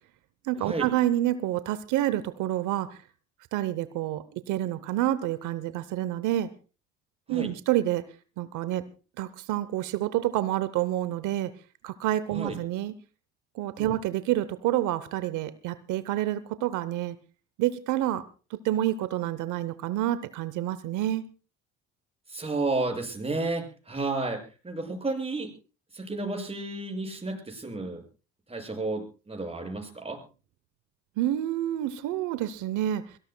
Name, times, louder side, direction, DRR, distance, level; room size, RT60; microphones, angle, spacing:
voice 1, 0.4-3.0 3.5-6.5 7.3-8.0 8.4-8.9 9.2-11.5 11.8-12.9 13.5-17.2 17.6-18.2 18.5-21.3 31.2-33.2, right 13 dB, 75° right, 15 dB, 0.8 m, -28 dB
voice 2, 22.3-25.5 25.9-28.0 28.5-30.2, right 3 dB, 20° right, 3 dB, 6.9 m, -32 dB
24.0 x 18.0 x 2.2 m, 0.34 s
supercardioid pair, 70°, 30 cm